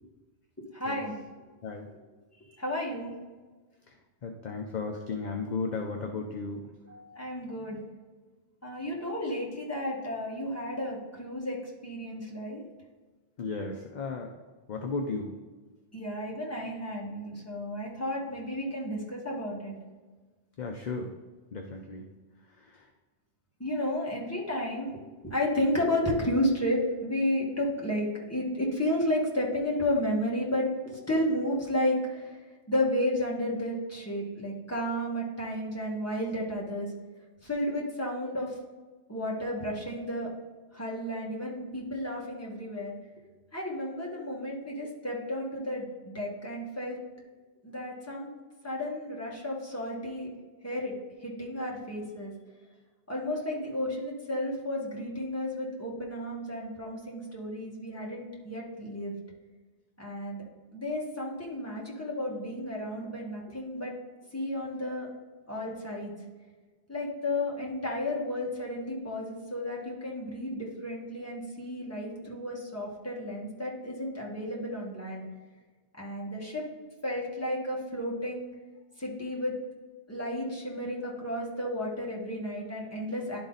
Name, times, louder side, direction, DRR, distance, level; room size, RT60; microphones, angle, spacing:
voice 1, 0.6-1.1 2.6-3.1 6.9-7.8 8.6-12.6 15.9-19.7 23.6-24.9 25.2-32.4 32.7-36.9 37.4-38.5 39.1-40.3 40.7-42.9 43.5-47.0 47.6-48.3 48.6-50.3 50.6-50.9 51.2-52.3 53.1-59.1 60.0-60.4 60.7-63.9 64.3-65.1 65.5-66.1 66.9-75.3 76.0-76.6 77.0-78.5 79.0-79.5 80.1-83.4, left 1 dB, 15° left, -4 dB, 1.7 m, -32 dB
voice 2, 4.2-6.7 13.4-14.3 14.7-15.3 20.6-21.1 21.5-22.0 22.6-22.9, left 4 dB, 50° left, 3 dB, 0.7 m, -35 dB
11.5 x 3.8 x 4.0 m, 1.3 s
omnidirectional pair, 1.1 m